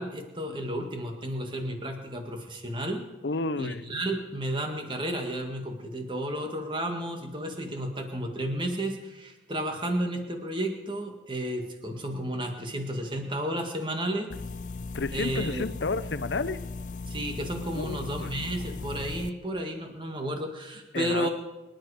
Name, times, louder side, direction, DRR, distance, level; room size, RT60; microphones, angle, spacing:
voice 1, 0.0-3.0 3.6-14.3 15.1-15.6 17.1-21.3, right 1 dB, 25° right, 3 dB, 2.0 m, -32 dB
voice 2, 3.2-3.8 14.9-16.6 17.8-18.3 20.9-21.3, left 3 dB, 80° left, 15 dB, 0.7 m, -31 dB
sound 1, 14.3-19.3, left 3 dB, 45° left, 0.5 m, -37 dB
24.5 x 11.0 x 5.0 m, 1.1 s
head